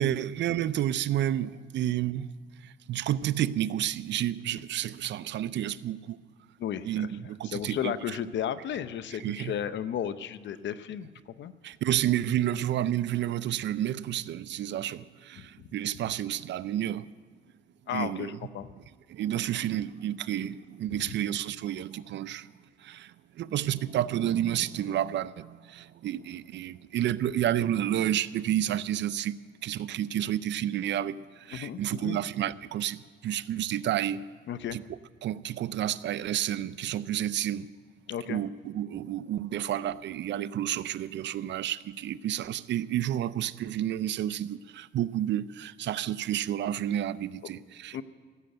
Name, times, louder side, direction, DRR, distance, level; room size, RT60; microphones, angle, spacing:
voice 1, 0.0-2.3 2.6-6.2 6.8-8.2 9.2-9.5 11.6-17.1 17.9-18.4 19.1-22.5 22.8-34.2 34.7-34.8 35.2-37.7 38.3-48.0, right 11 dB, 65° right, 0.5 m, -30 dB
voice 2, 6.6-7.1 7.4-11.1 11.4-11.5 15.4-15.7 17.9-18.7 31.5-32.2 34.5-34.8 38.1-38.4 47.9-48.0, left 9 dB, 65° left, 0.7 m, -34 dB
15.5 x 7.8 x 8.9 m
cardioid pair, 90°, 20 cm